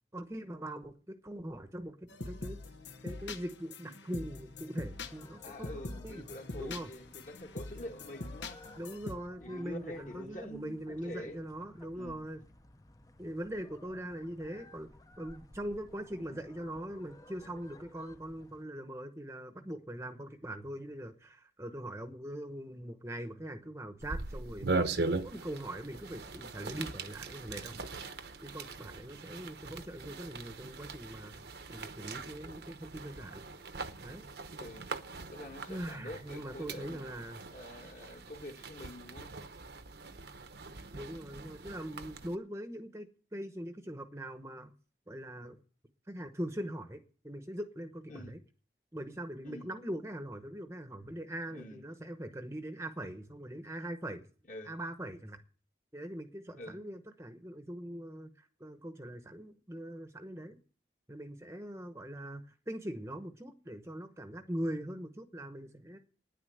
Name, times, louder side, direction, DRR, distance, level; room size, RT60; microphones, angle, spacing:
voice 1, 0.1-2.0 2.3-2.6 3.0-6.2 6.6-6.9 8.8-12.4 13.2-27.8 28.4-33.5 34.0-34.3 35.7-37.4 40.9-44.7 45.1-45.6 46.1-48.4 48.9-54.3 54.7-55.4 55.9-60.6 61.1-66.0, right 1 dB, 15° right, 0.9 m, -42 dB
sound 1, 2.1-9.1, left 2 dB, 80° left, 1.2 m, -44 dB
sound 2, 4.9-18.6, left 2 dB, 20° left, 0.7 m, -57 dB
voice 2, 5.4-8.6 9.4-11.4 11.9-12.2 16.2-16.4 34.6-34.9 35.3-37.1 37.5-39.3 48.1-48.3 49.4-49.7 51.5-51.8 54.5-54.7 56.6-56.8, left 1 dB, 45° left, 1.9 m, -46 dB
sound 3, 24.0-42.4, right 3 dB, 65° right, 0.9 m, -41 dB
10.0 x 9.9 x 7.9 m
head